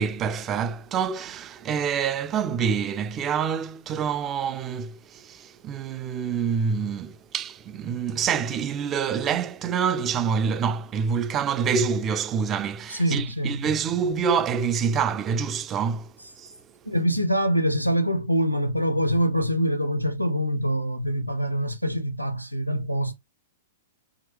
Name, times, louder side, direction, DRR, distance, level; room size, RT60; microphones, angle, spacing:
voice 1, 0.0-16.1 16.4-16.5, right 6 dB, 25° right, 0.4 m, -26 dB
voice 2, 12.9-13.7 16.8-23.1, equal, 90° right, 0.7 m, -24 dB
3.6 x 2.8 x 3.2 m
figure-of-eight pair, 105°, 0 cm